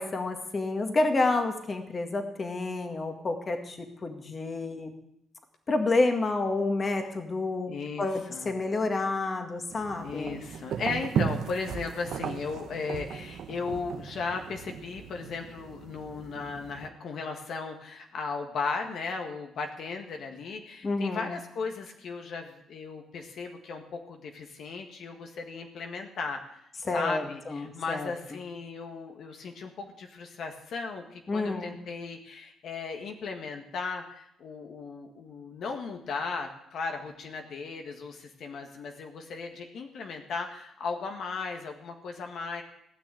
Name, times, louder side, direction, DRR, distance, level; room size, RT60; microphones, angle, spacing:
voice 1, 0.0-4.9 5.7-7.7 8.0-10.4 20.8-21.3 26.9-28.4 31.3-31.8, left 2 dB, 35° left, 5 dB, 1.9 m, -29 dB
voice 2, 7.7-8.5 10.0-26.6 26.9-42.6, left 4 dB, 65° left, 3 dB, 1.7 m, -36 dB
sound 1, 9.7-16.9, right 7 dB, 70° right, 1.1 m, -36 dB
16.5 x 6.4 x 9.0 m, 0.76 s
cardioid pair, 90°, 0 cm